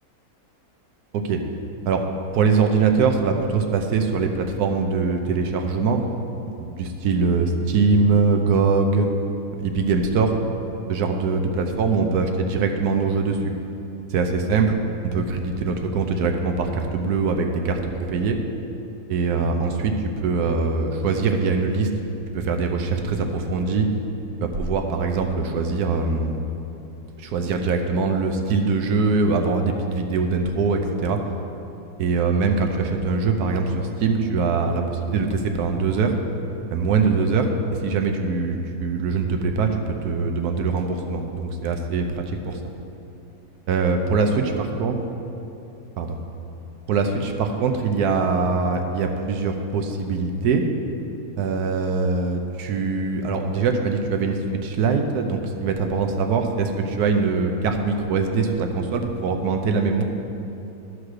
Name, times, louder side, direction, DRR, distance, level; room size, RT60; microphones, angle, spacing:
voice 1, 2.3-6.0 6.6-9.1 9.6-10.3 10.9-13.5 14.1-14.8 15.1-17.8 18.1-18.4 19.1-21.9 22.3-23.9 24.4-26.4 27.2-31.2 32.0-36.1 36.7-37.5 37.8-39.8 40.0-42.6 43.7-45.0 46.0-46.2 46.9-50.7 51.4-60.0, right 4 dB, 80° right, 5 dB, 1.3 m, -22 dB
12.0 x 4.8 x 6.4 m, 2.9 s
omnidirectional pair, 1.6 m